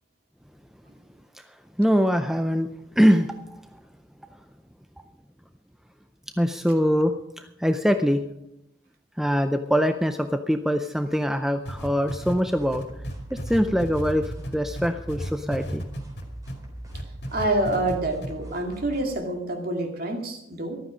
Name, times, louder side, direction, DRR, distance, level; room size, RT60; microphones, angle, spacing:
voice 1, 1.3-2.7 3.0-3.8 6.4-8.3 9.2-12.9 13.3-16.0, equal, ahead, 8 dB, 0.5 m, -23 dB
sound 1, 11.7-16.6 16.9-18.0 18.2-18.3, equal, 55° left, 2.4 m, -33 dB
sound 2, 12.5-19.1, right 1 dB, 20° right, 3.5 m, -41 dB
voice 2, 17.3-20.8, right 1 dB, 50° right, 3 dB, 2.4 m, -27 dB
14.5 x 12.5 x 5.2 m, 0.83 s
head